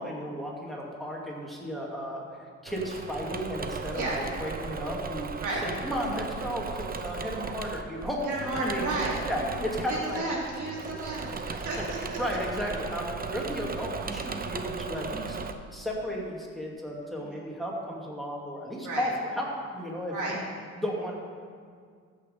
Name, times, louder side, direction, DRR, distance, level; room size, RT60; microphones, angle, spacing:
voice 1, 0.0-2.2 2.6-8.9 9.2-10.2 11.5-11.7 12.2-15.4 15.7-20.3 20.8-21.1, equal, ahead, -3 dB, 2.7 m, -34 dB
Engine / Mechanisms, 2.7-15.5, right 5 dB, 30° right, 0.8 m, -37 dB
voice 2, 8.2-9.1 9.9-12.2 17.2-17.3 18.8-19.1 20.1-20.3, right 2 dB, 80° right, -4 dB, 3.5 m, -33 dB
14.5 x 6.4 x 5.5 m, 2.1 s
cardioid pair, 90°, 30 cm